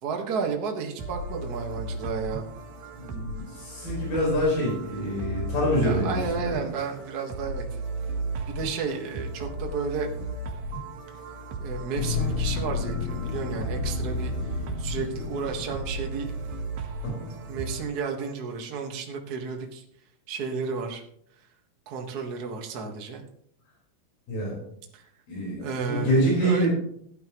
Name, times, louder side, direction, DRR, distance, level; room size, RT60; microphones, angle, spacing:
voice 1, 0.0-2.4 5.8-7.8 8.5-10.1 11.6-14.3 14.8-16.3 17.5-19.8 20.3-21.0 21.9-23.2 24.9-25.1 25.6-26.7, right 5 dB, 45° right, 2 dB, 1.3 m, -32 dB
sound 1, 1.0-17.8, right 1 dB, 85° right, 3.3 m, -35 dB
voice 2, 3.0-6.6 17.0-17.3 24.3-24.6 25.3-26.7, equal, 80° left, -4 dB, 6.5 m, -26 dB
sound 2, 12.0-16.6, left 5 dB, 60° left, 2.4 m, -32 dB
16.0 x 11.5 x 3.1 m, 0.69 s
omnidirectional pair, 4.1 m